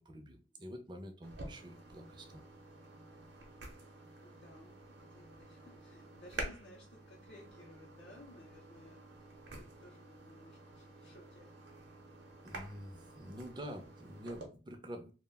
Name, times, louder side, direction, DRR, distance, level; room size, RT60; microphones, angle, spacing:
voice 1, 0.0-2.4 12.4-15.1, equal, 25° right, 0.4 m, -47 dB
sound 1, 1.2-14.5, right 2 dB, 65° right, 0.6 m, -50 dB
voice 2, 4.2-11.5, left 1 dB, 65° left, 0.5 m, -58 dB
2.3 x 2.1 x 3.3 m
head